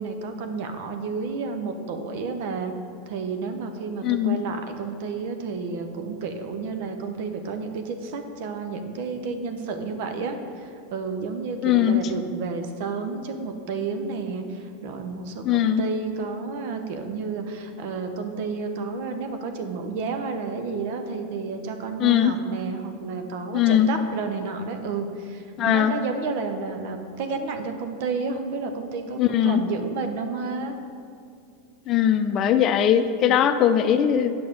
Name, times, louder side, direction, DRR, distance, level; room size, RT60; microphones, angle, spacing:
voice 1, 0.0-2.7 3.1-30.8 33.3-33.4, right 4 dB, 65° right, 6 dB, 0.9 m, -31 dB
voice 2, 4.0-4.4 11.6-12.0 15.4-15.8 22.0-22.3 23.5-23.9 25.6-25.9 29.2-29.6 31.9-34.3, left 10 dB, 40° left, 9 dB, 0.5 m, -20 dB
8.6 x 6.0 x 5.2 m, 2.4 s
hypercardioid pair, 100°, 0 cm